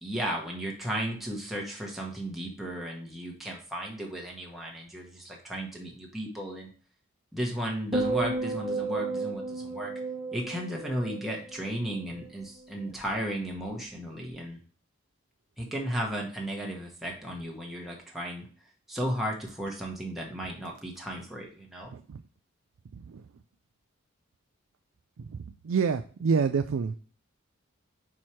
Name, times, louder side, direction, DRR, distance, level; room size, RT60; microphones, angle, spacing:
voice 1, 0.0-6.7 7.3-9.9 10.3-14.6 15.6-18.5 18.9-21.9, equal, ahead, -2 dB, 1.0 m, -34 dB
sound 1, 7.9-12.3 12.6-13.0, right 3 dB, 25° right, 0.9 m, -33 dB
voice 2, 21.9-22.2 22.9-23.3 25.2-26.9, right 5 dB, 75° right, 8 dB, 0.4 m, -28 dB
4.8 x 4.5 x 4.3 m, 0.41 s
head